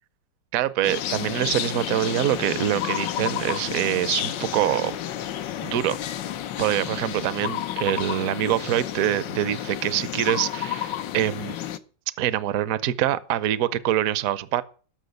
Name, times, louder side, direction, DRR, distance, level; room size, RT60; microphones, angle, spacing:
voice 1, 0.5-4.9 5.6-6.0 6.6-11.5 12.2-14.6, right 12 dB, 60° right, 1.0 m, -25 dB
sound 1, 0.8-11.8, left 11 dB, 85° left, 1.5 m, -31 dB
13.0 x 6.3 x 8.1 m
omnidirectional pair, 1.9 m